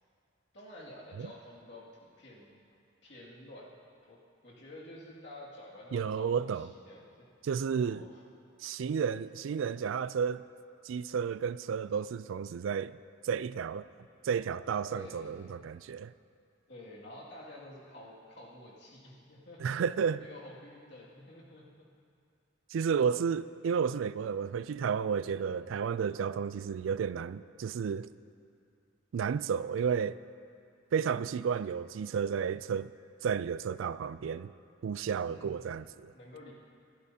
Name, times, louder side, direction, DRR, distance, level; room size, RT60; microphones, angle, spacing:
voice 1, 0.5-2.5 3.0-7.3 7.8-8.2 14.8-15.7 16.7-19.6 20.2-21.9 25.3-25.6 35.2-35.6 36.1-36.5, left 1 dB, 60° left, 2.3 m, -50 dB
voice 2, 5.9-6.7 7.4-8.1 8.6-10.4 10.8-13.0 13.2-13.9 14.2-16.1 19.6-20.2 22.7-28.1 29.1-30.2 30.9-32.9 33.2-34.5 34.8-36.1, right 6 dB, 80° right, 0.3 m, -32 dB
24.5 x 11.5 x 2.8 m
head